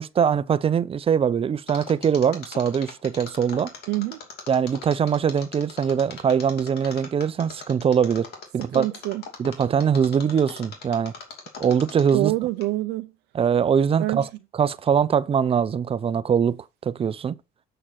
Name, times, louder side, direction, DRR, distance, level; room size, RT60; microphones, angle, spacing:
voice 1, 0.0-3.7 4.5-8.3 8.5-8.9 9.4-11.1 11.6-12.3 13.3-14.3 14.6-17.4, right 7 dB, 35° right, 0.6 m, -22 dB
Mechanisms, 1.7-12.3 12.6-12.7, left 5 dB, 70° left, 2.6 m, -40 dB
voice 2, 3.9-4.2 8.7-9.2 12.1-13.1 14.0-14.3, right 18 dB, 90° right, 0.6 m, -26 dB
7.6 x 6.6 x 4.1 m
cardioid pair, 110°, 17 cm